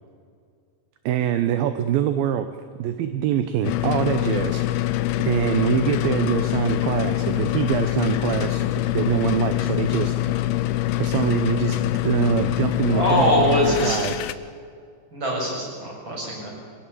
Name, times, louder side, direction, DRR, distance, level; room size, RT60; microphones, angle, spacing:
voice 1, 1.1-2.5 2.8-4.9 5.2-8.6 8.9-10.2 11.0-13.5 13.8-14.2, right 10 dB, 75° right, 10 dB, 2.4 m, -24 dB
sound 1, 3.6-14.3, left 15 dB, 75° left, 2.6 m, -24 dB
voice 2, 12.9-14.0 15.1-16.5, equal, 25° right, -3 dB, 8.0 m, -22 dB
24.5 x 17.5 x 8.5 m, 2.2 s
omnidirectional pair, 4.8 m